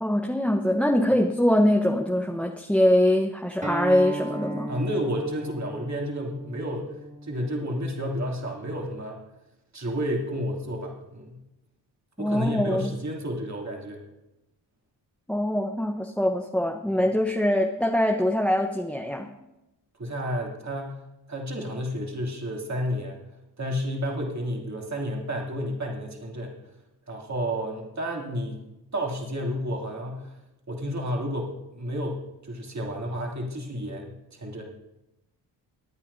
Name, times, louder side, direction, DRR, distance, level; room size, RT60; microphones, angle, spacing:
voice 1, 0.0-4.7 12.2-12.9 15.3-19.3, left 1 dB, 5° left, 2 dB, 1.1 m, -23 dB
Acoustic guitar, 3.6-8.8, right 2 dB, 15° right, 1.9 m, -37 dB
voice 2, 4.7-6.9 7.2-9.2 9.7-11.4 12.2-14.0 16.9-17.0 20.0-21.0 21.3-23.2 23.6-26.5 27.1-28.6 28.9-30.3 30.7-34.6, equal, 35° right, -1 dB, 3.0 m, -31 dB
21.0 x 9.1 x 2.8 m, 0.95 s
supercardioid pair, 45°, 48 cm